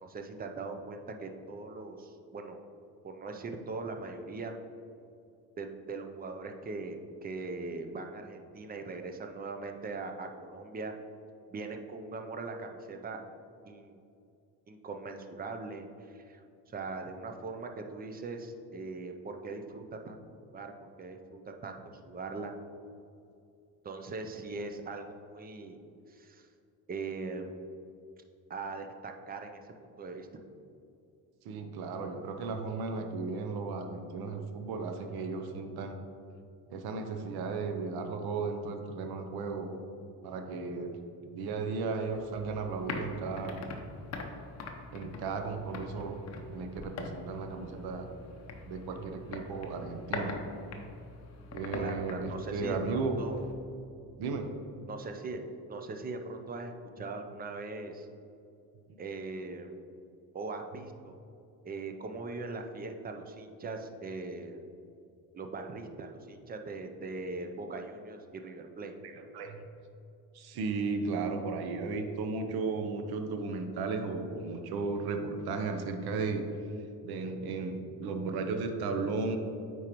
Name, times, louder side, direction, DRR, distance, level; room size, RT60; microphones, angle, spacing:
voice 1, 0.0-2.6 3.0-4.5 5.6-10.9 11.5-13.2 13.6-14.0 14.7-15.9 16.1-16.4 16.7-20.2 20.5-20.7 21.0-21.8 22.0-22.5 23.8-25.8 26.1-26.5 26.9-27.5 28.5-30.4 51.7-53.5 54.9-55.4 55.7-58.1 59.0-59.8 60.3-61.2 61.6-64.6 65.3-69.0, right 3 dB, 25° right, 5 dB, 0.5 m, -40 dB
voice 2, 31.4-36.0 36.7-39.8 40.2-41.0 41.3-43.6 44.9-46.2 46.5-48.1 48.7-50.4 51.5-53.2 54.2-54.5 69.0-69.6 70.3-76.4 77.0-79.4, right 4 dB, 65° right, 5 dB, 0.8 m, -35 dB
sound 1, 42.1-53.5, left 3 dB, 40° left, 0.8 m, -43 dB
8.7 x 4.6 x 3.0 m, 2.6 s
cardioid pair, 125°, 40 cm